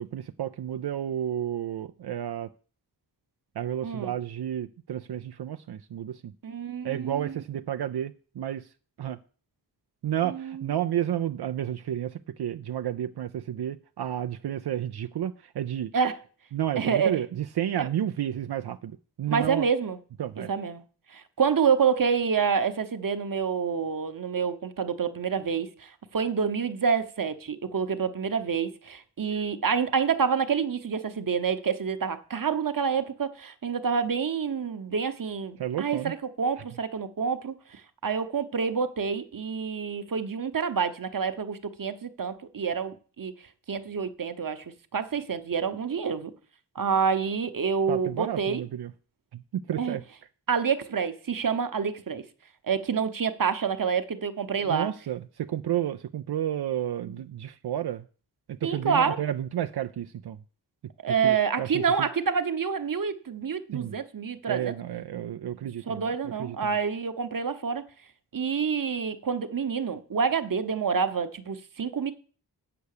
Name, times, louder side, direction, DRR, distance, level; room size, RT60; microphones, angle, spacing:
voice 1, 0.0-2.5 3.6-6.3 6.8-8.7 9.0-9.2 10.0-15.9 16.5-19.7 20.2-20.5 35.6-36.1 47.9-48.9 49.3-50.0 54.6-58.1 58.5-60.4 61.1-62.1 63.7-64.0 64.5-66.0 66.4-66.8, right 11 dB, 75° right, 0.5 m, -31 dB
voice 2, 3.8-4.1 6.4-7.4 10.2-10.7 15.9-16.2 16.8-17.2 17.8-17.9 19.3-20.0 20.5-20.8 21.1-43.3 43.7-44.6 44.9-46.3 46.7-48.6 49.8-50.0 50.5-52.2 52.7-54.9 57.1-57.2 58.6-59.2 61.0-64.7 65.9-67.8 68.3-72.1, right 6 dB, 55° right, 1.0 m, -28 dB
8.1 x 6.9 x 6.6 m
wide cardioid pair, 60°, 40 cm